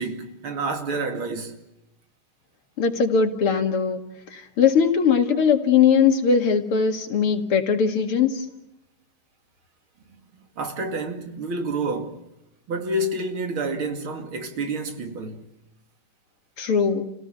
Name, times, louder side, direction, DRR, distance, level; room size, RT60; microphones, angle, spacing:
voice 1, 0.0-1.6 10.6-12.2 12.7-15.5, right 2 dB, 70° right, 3.2 m, -29 dB
voice 2, 2.8-4.0 4.3-8.5 16.6-17.1, left 6 dB, 85° left, 3.0 m, -20 dB
30.0 x 17.5 x 8.1 m
omnidirectional pair, 2.4 m